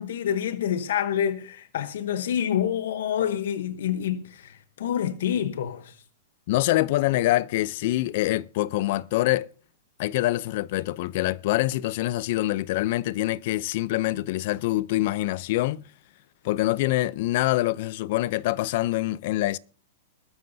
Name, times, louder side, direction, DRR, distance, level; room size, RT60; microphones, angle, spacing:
voice 1, 0.0-6.0, left 9 dB, 75° left, 1.0 m, -27 dB
voice 2, 6.5-9.5 10.0-15.8 16.4-19.6, left 16 dB, 55° left, 0.5 m, -25 dB
20.5 x 13.0 x 2.7 m
hypercardioid pair, 140°, 0 cm